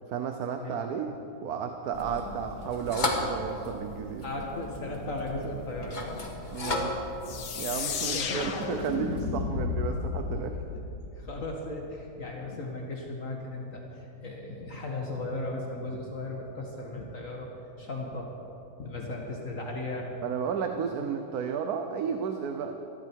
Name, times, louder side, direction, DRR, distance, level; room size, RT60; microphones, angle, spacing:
voice 1, 0.1-1.2 1.4-4.3 6.5-10.6 20.2-22.8, right 7 dB, 70° right, 6 dB, 1.3 m, -33 dB
sound 1, 1.9-9.3, left 2 dB, 30° left, 1.6 m, -36 dB
voice 2, 4.2-6.6 7.0-7.1 7.3-8.6 11.2-17.5 17.8-18.5 18.8-20.1, left 2 dB, 55° left, 0 dB, 1.9 m, -37 dB
sound 2, 7.2-11.8, left 5 dB, 85° left, 1.7 m, -33 dB
21.0 x 14.5 x 4.6 m, 2.9 s
omnidirectional pair, 1.7 m